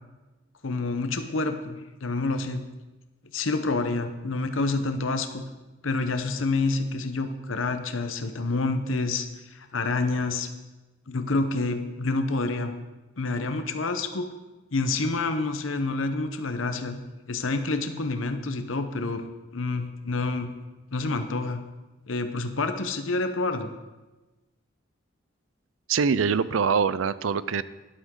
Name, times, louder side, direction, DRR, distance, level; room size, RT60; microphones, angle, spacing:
voice 1, 0.6-2.6 3.3-5.4 5.8-10.5 11.1-12.7 13.2-14.2 14.7-17.0 17.3-19.2 19.5-20.5 20.9-21.6 22.1-23.7, left 3 dB, 85° left, 7 dB, 0.9 m, -28 dB
voice 2, 25.9-27.6, right 6 dB, 85° right, 16 dB, 0.5 m, -24 dB
12.5 x 11.5 x 3.8 m, 1.1 s
head